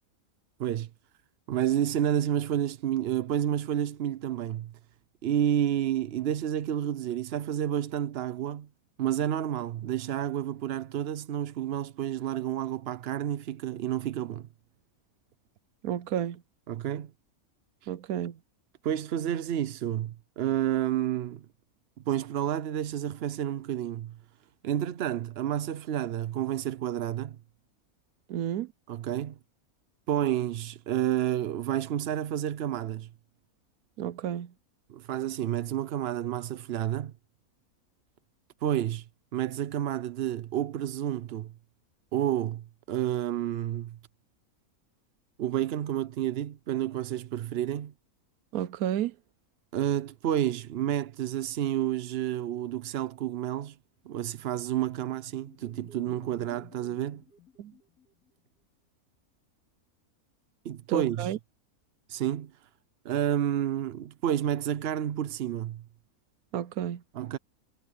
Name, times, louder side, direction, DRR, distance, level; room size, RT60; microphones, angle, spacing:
voice 1, 1.5-4.7 5.2-8.7 9.0-14.5 16.7-17.1 17.8-17.9 18.8-21.4 22.1-24.2 24.6-27.4 28.9-29.4 30.1-33.1 34.9-37.1 38.6-39.1 39.3-41.5 42.1-44.0 45.4-47.9 49.7-53.8 54.1-57.2 60.6-61.3 62.1-62.5 63.0-65.8 67.2-67.4, right 11 dB, 60° right, 0.7 m, -30 dB
voice 2, 15.8-16.4 17.9-18.4 28.3-28.7 34.0-34.5 48.5-49.1 57.6-57.7 60.9-61.4 66.5-67.0, right 10 dB, 80° right, 1.2 m, -31 dB
sound 1, 54.4-58.4, left 4 dB, 90° left, 3.0 m, -55 dB
omnidirectional pair, 1.5 m